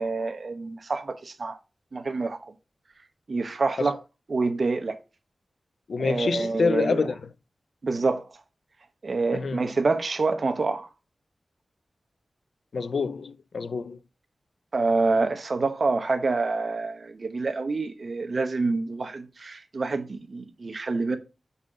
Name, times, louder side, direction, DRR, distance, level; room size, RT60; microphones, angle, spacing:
voice 1, 0.0-1.6 1.9-2.5 3.3-4.0 4.3-5.0 6.0-7.1 7.8-8.2 9.0-10.9 14.7-21.2, right 3 dB, 55° right, 0.9 m, -27 dB
voice 2, 5.9-7.2 9.3-9.6 12.7-14.0, left 4 dB, 80° left, 0.4 m, -27 dB
5.1 x 4.2 x 4.9 m
wide cardioid pair, 75°, 0 cm